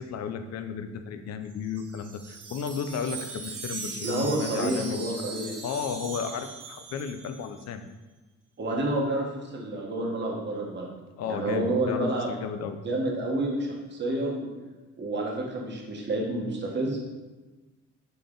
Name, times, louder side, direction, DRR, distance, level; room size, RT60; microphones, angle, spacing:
voice 1, 0.0-5.0 5.6-7.8 11.2-12.8, left 7 dB, 60° left, 9 dB, 0.5 m, -34 dB
Wind chime, 1.5-7.7, right 4 dB, 85° right, 0.9 m, -40 dB
voice 2, 4.0-5.5 8.6-10.9 11.3-12.3 12.8-14.5 15.0-17.0, right 1 dB, 35° right, -1 dB, 1.1 m, -29 dB
3.8 x 3.4 x 3.8 m, 1.2 s
cardioid pair, 90°, 30 cm